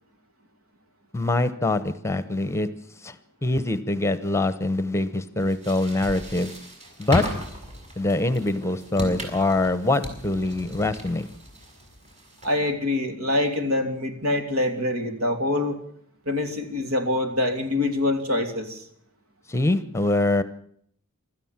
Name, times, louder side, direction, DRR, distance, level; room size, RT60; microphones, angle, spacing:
voice 1, 1.1-2.7 3.0-3.2 3.4-6.5 7.0-7.2 8.0-11.3 19.5-20.4, left 2 dB, 15° left, 14 dB, 1.0 m, -24 dB
sound 1, 5.4-12.7, equal, 30° right, 5.9 m, -36 dB
voice 2, 12.4-15.8 16.2-18.9, left 2 dB, 70° right, 7 dB, 3.1 m, -25 dB
26.0 x 13.5 x 7.4 m, 0.64 s
head